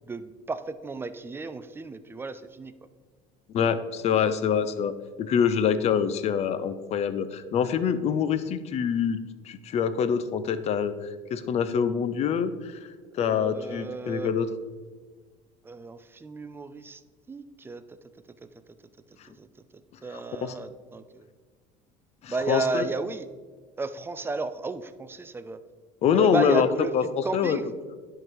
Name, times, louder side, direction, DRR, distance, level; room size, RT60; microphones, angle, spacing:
voice 1, 0.1-2.7 13.2-14.3 15.6-17.0 17.3-17.8 19.4-19.5 20.0-21.3 22.3-23.3 23.8-25.6 26.1-27.7, right 3 dB, 15° right, 12 dB, 0.4 m, -33 dB
voice 2, 3.5-9.2 9.4-10.9 11.3-12.9 13.2-14.5 20.1-20.5 22.2-22.9 26.0-26.7 26.9-27.6, left 7 dB, 45° left, 12 dB, 0.6 m, -25 dB
10.5 x 3.9 x 4.6 m, 1.4 s
cardioid pair, 120°, 16 cm